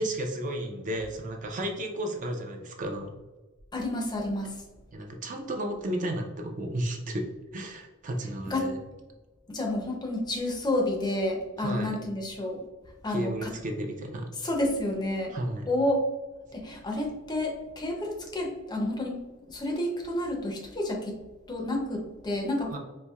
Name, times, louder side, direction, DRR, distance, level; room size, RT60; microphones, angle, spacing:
voice 1, 0.0-3.1 4.9-7.3 7.5-8.8 11.6-11.9 13.1-14.3 15.3-15.6 22.7-22.8, right 1 dB, 40° right, 3 dB, 0.5 m, -33 dB
voice 2, 3.7-4.6 8.5-8.7 9.5-12.6 13.0-13.5 14.4-15.4 15.7-16.0 16.5-21.2 21.5-22.8, left 1 dB, 20° left, 1 dB, 0.5 m, -30 dB
4.2 x 2.7 x 2.2 m, 1.1 s
head